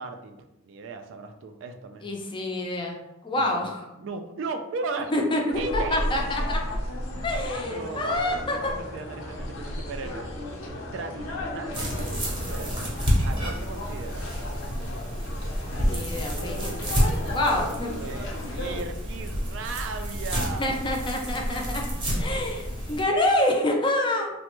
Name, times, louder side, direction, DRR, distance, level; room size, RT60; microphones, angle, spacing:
voice 1, 0.0-2.2 3.3-3.7 4.0-6.1 7.7-10.3 10.9-12.9 13.2-14.3 14.6-15.2 16.1-16.2 17.3-17.5 18.0-20.7 22.0-22.4 22.8-23.0, right 3 dB, 65° right, 6 dB, 0.3 m, -37 dB
voice 2, 2.0-3.0 3.2-3.9 5.1-6.6 7.2-8.7 15.8-16.9 17.3-17.9 20.4-21.8 22.2-24.3, left 1 dB, 25° left, 1 dB, 0.4 m, -27 dB
sound 1, 5.5-18.8, left 1 dB, 90° left, 0.6 m, -34 dB
sound 2, 11.7-23.0, equal, 25° right, 0.7 m, -29 dB
3.2 x 2.1 x 3.0 m, 0.93 s
head